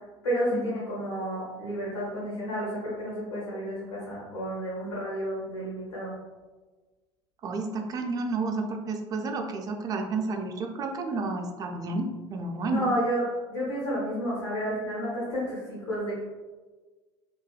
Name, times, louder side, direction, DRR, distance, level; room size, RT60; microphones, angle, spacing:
voice 1, 0.2-6.1 12.7-16.2, equal, 80° left, -7 dB, 0.7 m, -31 dB
voice 2, 7.4-12.9, right 3 dB, 25° right, 3 dB, 0.3 m, -31 dB
2.6 x 2.2 x 2.3 m, 1.3 s
figure-of-eight pair, 70°, 15 cm